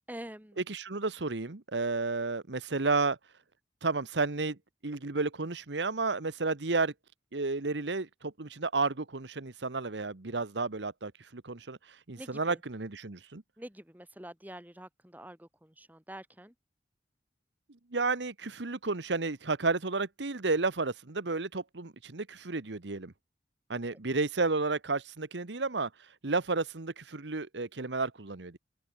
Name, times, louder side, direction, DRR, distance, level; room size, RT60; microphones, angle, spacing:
voice 1, 0.0-0.6 12.1-12.6 13.6-16.5, right 1 dB, 10° right, 3.4 m, -46 dB
voice 2, 0.6-3.2 3.8-4.6 4.8-6.9 7.3-13.4 17.9-23.1 23.7-25.9 26.2-28.6, right 3 dB, 85° right, 1.3 m, -32 dB
head